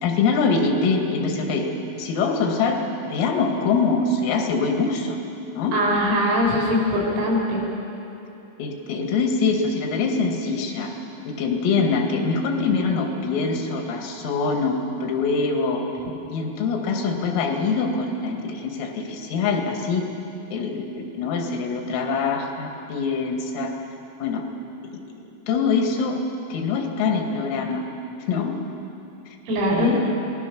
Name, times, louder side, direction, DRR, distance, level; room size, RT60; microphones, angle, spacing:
voice 1, 0.0-1.7 2.0-5.2 5.5-5.8 8.6-10.9 11.3-15.9 16.3-20.1 20.5-23.7 24.2-24.4 25.5-26.2 26.5-27.9 28.3-28.6 29.7-30.2, left 4 dB, 80° left, 2 dB, 4.7 m, -24 dB
voice 2, 5.7-7.6 29.5-29.9, left 1 dB, 80° right, -3 dB, 7.4 m, -21 dB
27.0 x 19.0 x 6.3 m, 2.9 s
omnidirectional pair, 5.9 m